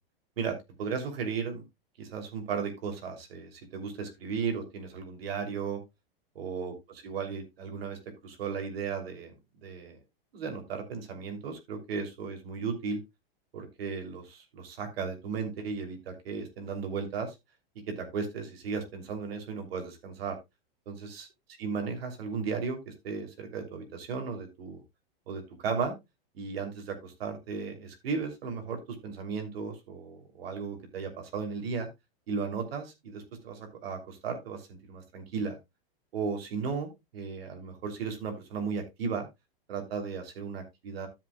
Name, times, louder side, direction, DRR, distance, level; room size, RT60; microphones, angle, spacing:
voice 1, 0.4-1.6 2.0-5.8 6.3-9.3 9.6-10.0 10.3-13.0 13.5-17.3 17.9-20.4 20.9-21.3 21.6-24.8 25.3-25.9 26.3-31.9 32.3-35.6 36.1-39.3 39.7-41.1, right 5 dB, 75° right, 5 dB, 3.0 m, -35 dB
12.5 x 8.0 x 2.3 m, 0.21 s
hypercardioid pair, 120°, 30 cm